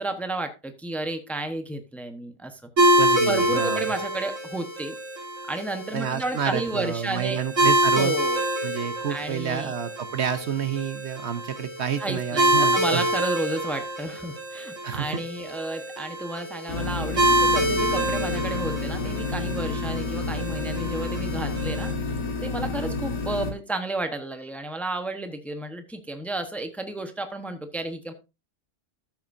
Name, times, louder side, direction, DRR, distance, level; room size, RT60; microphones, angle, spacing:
voice 1, 0.0-5.0 5.5-7.4 7.9-8.4 9.1-9.7 12.0-22.1 22.4-28.1, right 2 dB, ahead, 7 dB, 0.9 m, -32 dB
sound 1, 2.8-21.9, right 1 dB, 80° right, 3.6 m, -26 dB
voice 2, 3.0-3.9 5.9-8.1 8.6-13.0 14.8-15.2, right 8 dB, 65° right, 11 dB, 1.1 m, -29 dB
sound 2, 16.7-23.5, left 3 dB, 65° left, 1.7 m, -30 dB
13.0 x 7.9 x 2.6 m, 0.27 s
omnidirectional pair, 1.3 m